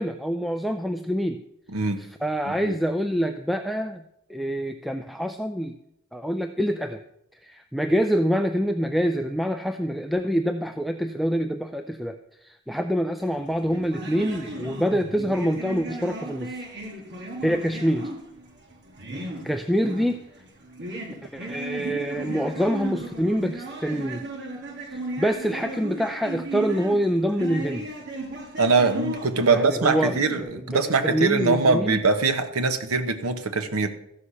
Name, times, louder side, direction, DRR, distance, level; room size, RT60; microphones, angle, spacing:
voice 1, 0.0-1.4 2.2-4.0 4.3-5.8 6.1-7.0 7.4-16.6 17.4-18.1 19.2-20.2 21.2-24.2 24.9-27.9 29.5-30.1 30.4-32.0, equal, ahead, 7 dB, 0.4 m, -26 dB
sound 1, 13.2-30.4, right 2 dB, 55° right, 2.2 m, -36 dB
voice 2, 28.6-33.9, right 4 dB, 85° right, 9 dB, 1.1 m, -22 dB
14.0 x 6.5 x 5.6 m, 0.78 s
head